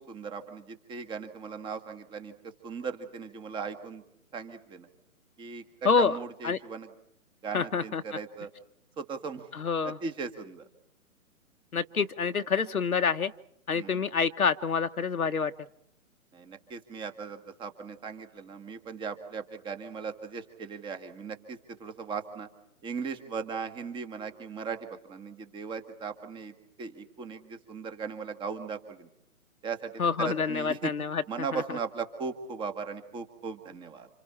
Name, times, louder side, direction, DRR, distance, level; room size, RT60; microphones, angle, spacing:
voice 1, 0.0-4.0 4.3-4.9 5.4-6.9 7.4-8.5 9.0-9.5 9.8-10.7 13.7-14.0 16.3-22.5 22.8-29.1 29.6-30.9 31.3-34.1, right 5 dB, 10° right, 8 dB, 1.8 m, -38 dB
voice 2, 5.8-6.2 6.4-6.6 7.5-8.0 9.6-10.0 11.7-13.3 13.7-15.5 30.0-31.2 31.5-31.6, left 5 dB, 70° left, 8 dB, 1.2 m, -27 dB
29.5 x 27.5 x 4.4 m, 0.74 s
figure-of-eight pair, 135°, 44 cm